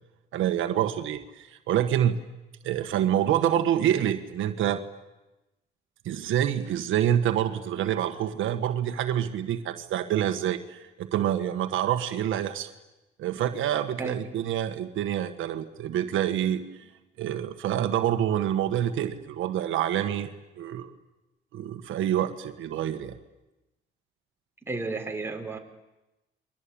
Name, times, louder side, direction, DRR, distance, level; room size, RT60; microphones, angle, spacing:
voice 1, 0.3-2.2 2.6-4.8 6.0-12.7 13.2-16.6 17.2-20.3 20.6-20.9 21.5-23.2, right 10 dB, 80° right, 8 dB, 1.6 m, -27 dB
voice 2, 24.6-25.6, right 3 dB, 10° right, 2 dB, 4.6 m, -32 dB
29.5 x 23.0 x 8.8 m, 1.0 s
cardioid pair, 90°, 20 cm